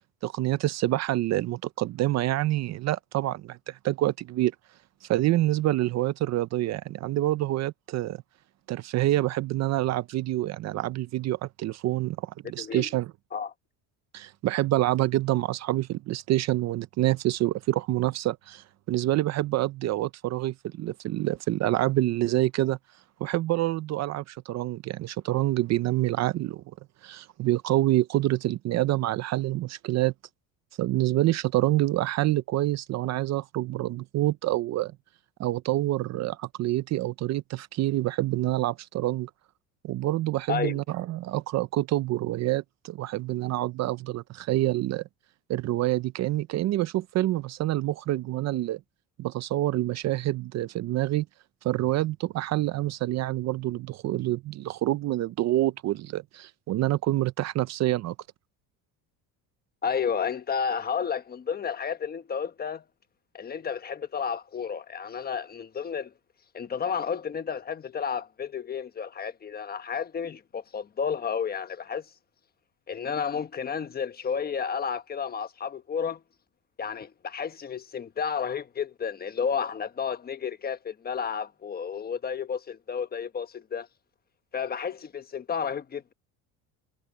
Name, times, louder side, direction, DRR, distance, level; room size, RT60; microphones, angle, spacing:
voice 1, 0.2-4.5 5.0-8.2 8.7-13.1 14.1-22.8 23.2-26.6 27.0-30.1 30.8-34.9 35.4-39.3 39.8-45.0 45.5-48.8 49.2-51.3 51.6-58.1, right 15 dB, 45° right, 0.6 m, -27 dB
voice 2, 12.6-12.9 13.3-13.5 40.5-40.8 59.8-62.8 63.3-66.1 66.5-72.1 72.9-76.2 76.8-83.9 84.5-86.1, left 7 dB, 25° left, 1.2 m, -31 dB
cardioid pair, 140°, 38 cm